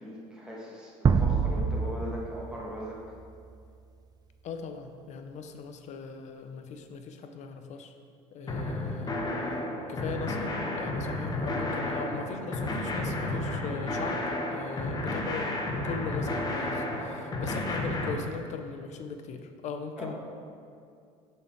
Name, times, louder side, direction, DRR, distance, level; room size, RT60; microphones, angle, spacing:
voice 1, 0.0-3.0 8.5-8.6 20.0-20.1, equal, 5° right, -5 dB, 1.5 m, -39 dB
sound 1, 1.0-3.5, right 5 dB, 25° right, 0.4 m, -26 dB
voice 2, 4.4-7.9 8.3-9.2 9.9-14.2 14.5-15.5 15.8-20.2, left 5 dB, 50° left, 7 dB, 0.6 m, -39 dB
sound 2, 8.5-18.1, left 2 dB, 25° left, 1.0 m, -32 dB
6.8 x 4.1 x 4.5 m, 2.4 s
supercardioid pair, 85°, 15 cm